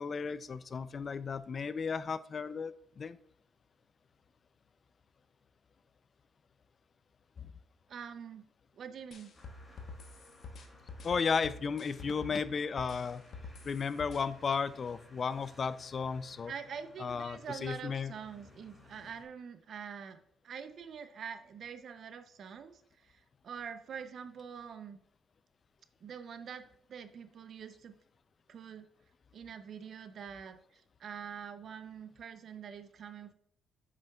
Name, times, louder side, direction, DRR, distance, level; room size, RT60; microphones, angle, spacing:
voice 1, 0.0-3.2 7.4-7.5 11.0-13.2 13.6-16.5 17.0-18.1, left 5 dB, 45° left, 15 dB, 0.4 m, -34 dB
voice 2, 7.9-8.5 8.7-9.4 16.5-20.2 20.4-25.0 26.0-28.0 28.5-28.9 29.3-33.3, right 7 dB, 60° right, 10 dB, 0.6 m, -45 dB
sound 1, 9.1-12.4 12.8-14.2, left 3 dB, 65° left, 1.0 m, -47 dB
sound 2, 9.3-19.2, left 2 dB, 15° left, 2.6 m, -59 dB
8.5 x 6.3 x 2.3 m, 0.70 s
cardioid pair, 90°, 0 cm